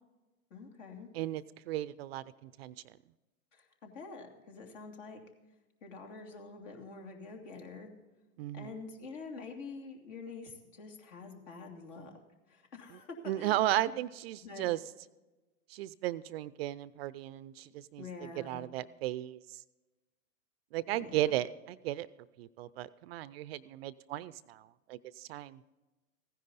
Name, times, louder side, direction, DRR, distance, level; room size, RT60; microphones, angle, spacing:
voice 1, 0.5-1.1 3.5-5.2 5.8-7.9 8.5-12.2 12.5-13.9 14.4-14.7 18.0-18.6 20.9-21.4, left 4 dB, 60° left, 3 dB, 2.9 m, -47 dB
voice 2, 1.1-2.9 8.4-8.7 12.9-13.0 13.3-14.8 15.7-19.6 20.7-22.1 22.4-25.6, right 14 dB, 45° right, 17 dB, 0.5 m, -35 dB
15.5 x 10.5 x 4.1 m, 1.1 s
hypercardioid pair, 110°, 43 cm